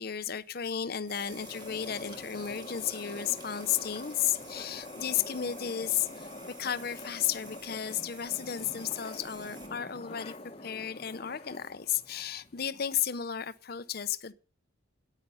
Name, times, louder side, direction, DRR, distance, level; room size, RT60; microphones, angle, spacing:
voice 1, 0.0-6.3 6.6-10.3 10.6-14.3, left 9 dB, 50° left, 0.6 m, -33 dB
sound 1, 1.0-9.7, right 3 dB, 20° right, 2.0 m, -51 dB
sound 2, 1.1-12.6, left 2 dB, 30° left, 1.0 m, -46 dB
9.8 x 9.2 x 5.5 m
head